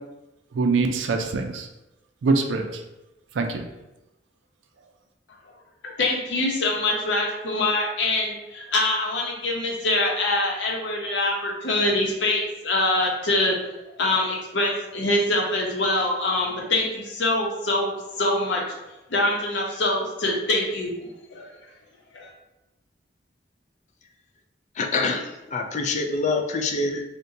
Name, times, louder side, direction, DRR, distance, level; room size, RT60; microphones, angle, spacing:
voice 1, 0.5-1.7 2.2-2.8 3.3-3.7, right 3 dB, 90° right, 5 dB, 0.4 m, -23 dB
voice 2, 5.8-13.6 14.0-18.6 19.1-21.5 22.1-22.3, left 2 dB, 80° left, -1 dB, 0.7 m, -24 dB
voice 3, 24.8-27.0, left 3 dB, 40° left, 3 dB, 0.4 m, -25 dB
2.6 x 2.2 x 3.9 m, 0.98 s
head